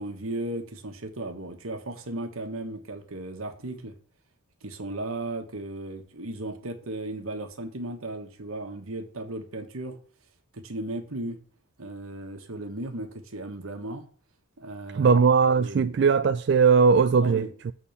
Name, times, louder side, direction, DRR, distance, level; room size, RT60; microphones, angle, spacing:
voice 1, 0.0-4.0 4.6-10.0 10.5-11.4 11.8-14.0 14.6-15.2 15.5-15.9 17.2-17.5, right 1 dB, 85° right, 1.4 m, -36 dB
voice 2, 14.9-17.7, right 5 dB, 55° right, 0.3 m, -20 dB
7.7 x 4.2 x 6.9 m
head